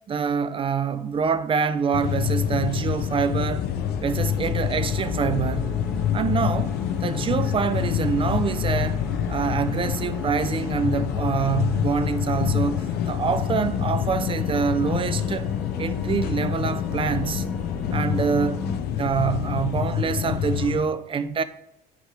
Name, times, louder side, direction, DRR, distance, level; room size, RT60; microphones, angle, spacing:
voice 1, 0.1-3.7 4.0-5.7 6.1-6.7 7.0-9.0 9.3-12.8 13.1-15.5 15.8-17.5 17.9-18.6 18.9-21.4, right 6 dB, 30° right, 0.4 m, -25 dB
sound 1, 1.9-20.8, left 10 dB, 70° left, 0.5 m, -27 dB
sound 2, 3.2-18.8, left 1 dB, ahead, 1.5 m, -35 dB
9.1 x 5.1 x 3.2 m
cardioid pair, 110°, 17 cm